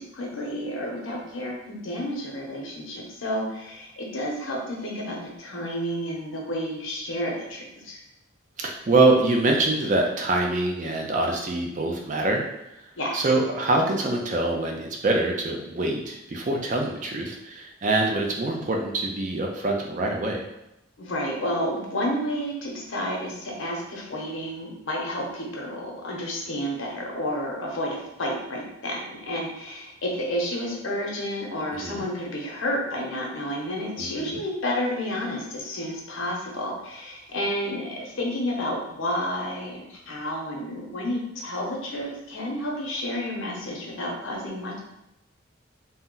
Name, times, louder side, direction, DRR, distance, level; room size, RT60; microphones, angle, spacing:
voice 1, 0.0-8.0 13.0-13.2 21.0-44.8, equal, 80° left, -1 dB, 0.8 m, -31 dB
voice 2, 8.6-12.4 13.1-20.4 31.8-32.1 34.0-34.4, right 2 dB, 40° right, 1 dB, 0.4 m, -24 dB
2.8 x 2.1 x 3.7 m, 0.87 s
head